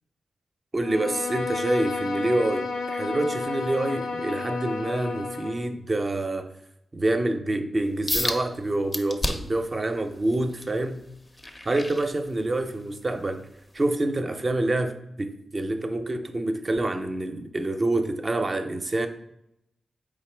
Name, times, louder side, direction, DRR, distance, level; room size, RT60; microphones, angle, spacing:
voice 1, 0.7-6.5 6.9-11.0 11.6-13.5 13.7-19.1, right 2 dB, 40° right, 0.5 m, -27 dB
Bowed string instrument, 0.8-5.7, left 4 dB, 90° left, 0.4 m, -31 dB
sound 1, 8.1-8.4 8.9-9.6 10.1-12.7 13.2-13.4 13.9-14.0, left 1 dB, 30° left, 0.5 m, -31 dB
4.2 x 3.5 x 3.2 m
cardioid pair, 50°, 0 cm